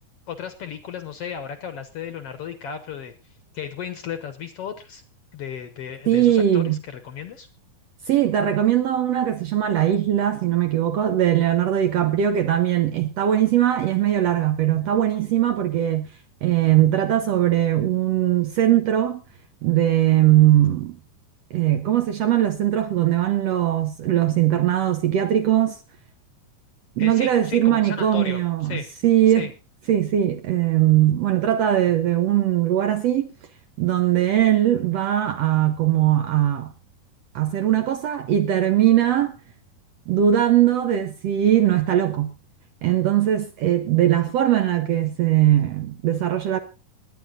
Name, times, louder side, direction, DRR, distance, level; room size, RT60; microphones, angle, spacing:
voice 1, 0.3-5.0 5.3-7.5 27.0-28.9 29.4-29.5, left 8 dB, 60° left, 1.7 m, -35 dB
voice 2, 6.1-6.8 8.1-16.1 16.4-19.2 19.6-21.0 21.5-25.8 27.0-29.5 29.9-33.3 33.8-36.7 37.4-39.3 40.1-42.3 42.8-46.6, right 11 dB, 70° right, 1.6 m, -20 dB
18.5 x 10.0 x 3.8 m
omnidirectional pair, 3.7 m